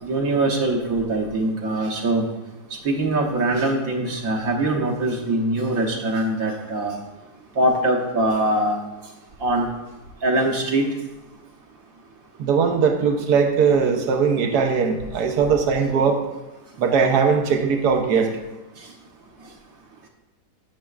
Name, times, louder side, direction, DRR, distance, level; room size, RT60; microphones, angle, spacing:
voice 1, 0.0-2.2 2.8-6.9 7.5-8.8 9.4-9.7 10.2-10.9, right 2 dB, 60° right, 0 dB, 1.4 m, -22 dB
voice 2, 12.4-16.2 16.8-18.3, right 6 dB, 80° right, 4 dB, 1.4 m, -20 dB
10.5 x 6.2 x 2.4 m, 1.1 s
omnidirectional pair, 1.7 m